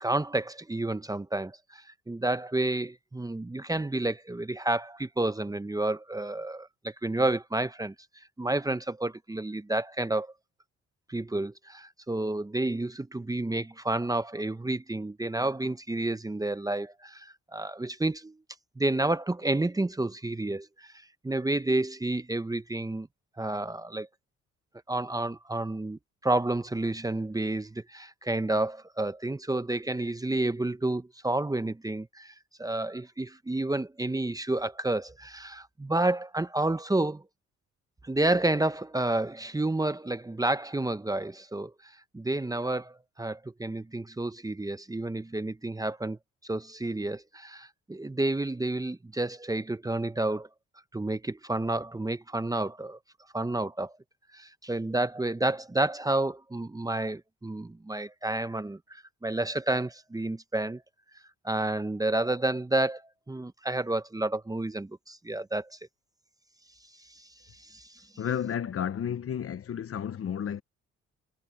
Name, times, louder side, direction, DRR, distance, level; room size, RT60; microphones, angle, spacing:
voice 1, 0.0-7.9 8.4-10.3 11.1-18.4 18.8-20.9 21.2-23.1 23.4-24.1 24.9-32.3 32.6-37.2 38.0-46.2 46.4-50.5 50.9-53.0 53.3-53.9 54.3-60.8 61.4-63.0 63.3-65.8 67.1-68.1, right 2 dB, 10° right, 0.9 m, -30 dB
voice 2, 68.2-70.6, left 8 dB, 50° left, 1.0 m, -32 dB
cardioid pair, 90°, 30 cm